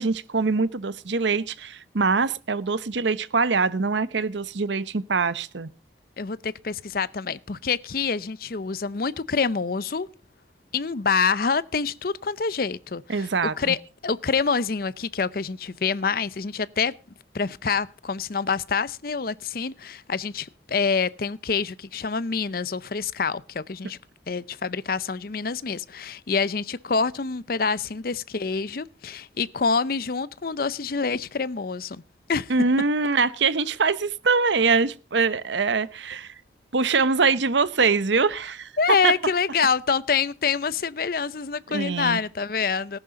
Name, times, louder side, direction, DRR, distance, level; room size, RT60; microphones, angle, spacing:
voice 1, 0.0-5.7 13.1-13.8 32.5-36.3 36.7-38.7 39.0-39.1 41.7-42.2, right 4 dB, 80° right, 0.8 m, -23 dB
voice 2, 6.2-10.1 10.7-13.3 13.6-16.9 17.3-24.0 24.3-32.0 32.3-32.5 38.8-43.0, left 5 dB, 50° left, 0.6 m, -26 dB
18.5 x 11.0 x 3.8 m
head